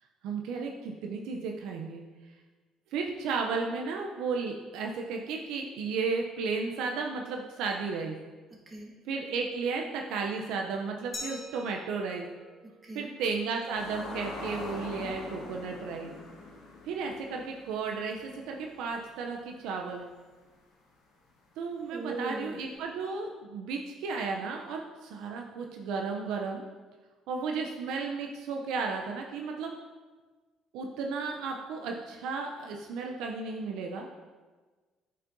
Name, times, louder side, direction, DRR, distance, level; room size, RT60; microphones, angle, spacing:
voice 1, 0.2-2.0 2.9-8.1 9.1-12.2 12.9-16.1 16.8-20.0 21.6-26.6 27.3-29.8 30.7-34.1, right 4 dB, 80° right, 1 dB, 0.6 m, -34 dB
voice 2, 8.7-9.0 12.8-13.1 21.9-22.6, right 2 dB, 25° right, -3 dB, 1.8 m, -38 dB
Glass, 11.1-13.9, left 1 dB, 30° left, 1.7 m, -45 dB
sound 1, 13.7-19.2 19.6-19.7 22.8-22.9, left 2 dB, 80° left, 1.3 m, -43 dB
8.5 x 5.4 x 2.7 m, 1.4 s
cardioid pair, 95°, 0 cm